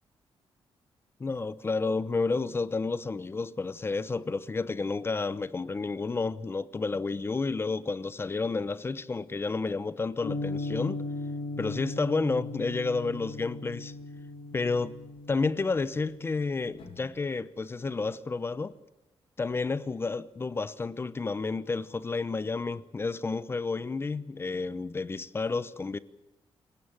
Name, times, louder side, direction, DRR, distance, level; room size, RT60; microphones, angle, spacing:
voice 1, 1.2-11.0 11.6-13.9 14.5-14.9 15.3-18.7 19.4-26.0, left 4 dB, 25° left, 0.9 m, -31 dB
sound 1, 10.2-17.0, left 2 dB, 70° left, 5.5 m, -38 dB
27.5 x 18.0 x 9.1 m
wide cardioid pair, 160°, 10 cm